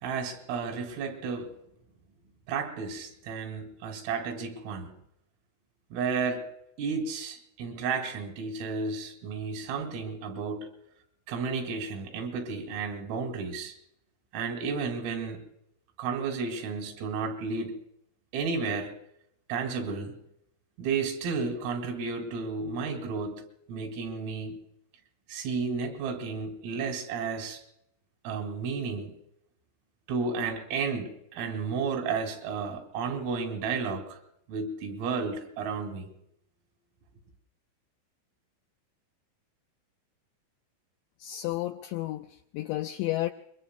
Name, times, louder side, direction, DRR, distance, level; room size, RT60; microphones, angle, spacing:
voice 1, 0.0-1.5 2.5-4.9 5.9-6.5 6.8-10.7 11.3-13.7 14.3-15.4 16.0-17.8 18.3-18.9 19.5-20.2 20.8-23.4 23.7-24.6 25.3-27.6 28.3-29.2 30.1-34.2 34.5-36.1, right 5 dB, 85° right, 4 dB, 5.3 m, -32 dB
voice 2, 41.2-43.3, left 16 dB, 80° left, 4 dB, 2.7 m, -32 dB
26.5 x 22.5 x 2.2 m, 0.76 s
omnidirectional pair, 5.8 m